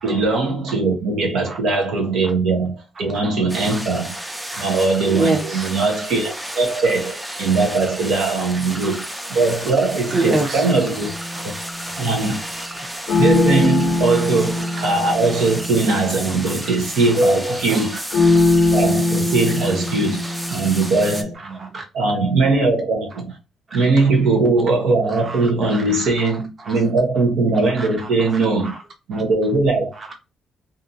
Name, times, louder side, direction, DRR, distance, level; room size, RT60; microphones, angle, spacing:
voice 1, 0.0-4.2 4.6-9.0 9.3-11.1 12.0-12.4 13.2-18.0 18.7-21.4 21.9-23.3 23.7-28.7 29.1-29.9, right 3 dB, 80° right, 0.8 m, -20 dB
voice 2, 1.5-1.8 3.6-3.8 4.5-4.7 5.0-5.7 8.3-8.4 8.7-8.9 10.1-10.7 11.1-11.4 11.9-12.0 12.8-12.9 16.5-16.6 17.7-17.9 18.2-18.3 19.9-20.0 20.5-20.6 21.4-21.8 23.7-23.8 25.1-26.3 26.6-26.8 27.6-28.8 29.1-29.2 30.0-30.1, right 2 dB, 40° right, 0.9 m, -28 dB
sound 1, 3.5-21.2, right 1 dB, 10° right, 0.4 m, -32 dB
sound 2, 11.0-12.0 13.1-17.1 18.1-21.3, left 2 dB, 75° left, 0.6 m, -21 dB
2.6 x 2.4 x 2.6 m
cardioid pair, 90°, 0 cm